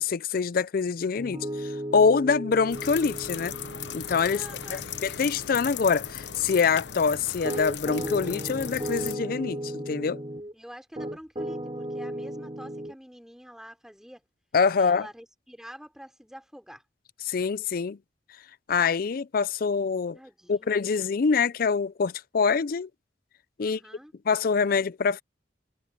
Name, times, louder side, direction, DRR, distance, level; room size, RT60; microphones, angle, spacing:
voice 1, 0.0-3.5 3.9-4.4 4.7-10.2 14.5-15.1 17.3-18.0 18.7-20.2 20.5-22.9 23.6-23.8 24.3-25.2, left 5 dB, 55° left, 0.4 m, -25 dB
Piano, 1.2-10.5 11.0-13.0, right 1 dB, 25° right, 3.8 m, -36 dB
sound 1, 2.7-9.1, left 9 dB, 75° left, 0.9 m, -37 dB
voice 2, 4.3-4.8 10.5-14.2 14.7-16.8 20.1-21.1 23.6-24.1, equal, 5° right, 4.6 m, -47 dB
head